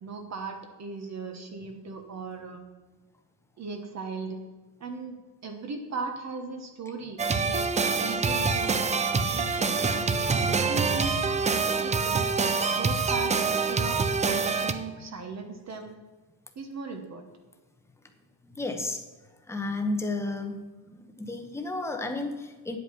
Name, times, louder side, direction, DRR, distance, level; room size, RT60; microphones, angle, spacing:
voice 1, 0.0-2.6 3.6-4.4 4.8-7.7 8.0-8.8 9.1-10.2 10.5-12.3 12.7-15.9 16.5-17.3, right 4 dB, 40° right, 5 dB, 1.2 m, -38 dB
sound 1, 7.2-14.7, right 4 dB, 15° right, 0.4 m, -26 dB
voice 2, 18.4-19.0 19.5-20.6 20.9-22.8, left 2 dB, 5° left, 5 dB, 0.9 m, -32 dB
9.5 x 8.2 x 5.7 m, 1.3 s
cardioid pair, 155°, 43 cm